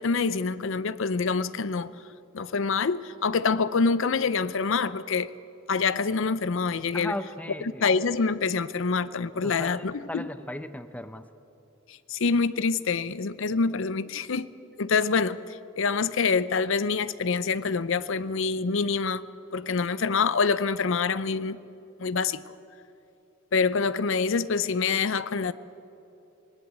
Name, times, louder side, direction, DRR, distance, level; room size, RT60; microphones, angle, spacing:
voice 1, 0.0-1.9 2.3-5.3 5.7-7.2 7.6-10.3 11.9-14.5 14.8-19.2 19.5-21.6 22.0-22.5 23.5-25.5, left 4 dB, 65° left, 16 dB, 0.6 m, -26 dB
voice 2, 6.9-7.8 9.4-11.3, left 1 dB, 5° left, 12 dB, 0.6 m, -36 dB
19.0 x 19.0 x 8.2 m, 2.9 s
head